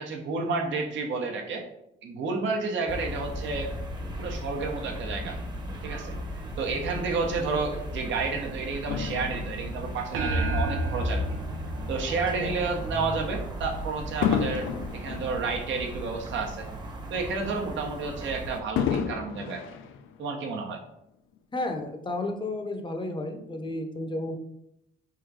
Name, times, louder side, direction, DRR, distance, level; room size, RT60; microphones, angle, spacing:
voice 1, 0.0-1.6 2.0-3.7 4.2-5.4 5.8-6.1 6.6-11.2 11.9-16.7 17.1-19.6 20.2-20.8, right 4 dB, 70° right, 1 dB, 1.0 m, -31 dB
sound 1, 2.9-18.6, equal, 20° right, 0.9 m, -36 dB
Fireworks, 8.9-11.5 12.1-12.3 14.2-16.7 17.1-17.2 18.8-20.6 21.4-21.5, left 8 dB, 85° left, 0.4 m, -32 dB
sound 2, 10.1-12.8, right 1 dB, 90° right, 0.6 m, -31 dB
voice 2, 12.1-12.6 21.5-24.4, left 2 dB, 25° left, 5 dB, 0.7 m, -33 dB
3.8 x 2.5 x 4.6 m, 0.79 s
cardioid pair, 90°, 20 cm